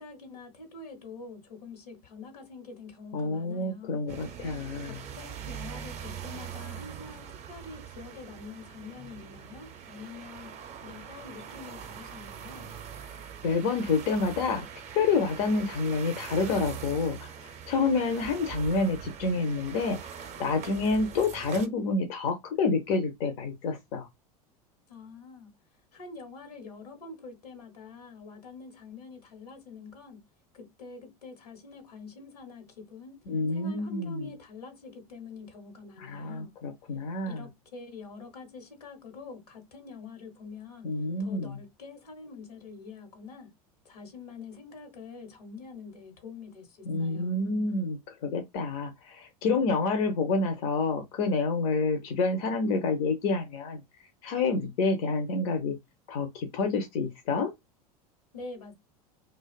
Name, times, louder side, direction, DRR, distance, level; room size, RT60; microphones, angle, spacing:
voice 1, 0.0-4.0 4.8-12.7 24.9-25.5 25.9-30.2 30.5-33.2 33.5-36.5 37.3-40.9 41.2-43.5 43.8-47.4 58.3-58.7, left 4 dB, 90° left, 1.0 m, -46 dB
voice 2, 3.1-5.0 13.4-14.6 14.9-24.1 33.3-34.3 36.0-37.4 40.8-41.6 46.9-53.8 54.2-55.8 56.1-57.5, left 4 dB, 60° left, 0.6 m, -28 dB
sound 1, 4.1-21.7, right 8 dB, 35° right, 0.5 m, -42 dB
2.4 x 2.2 x 2.2 m
hypercardioid pair, 85°, 19 cm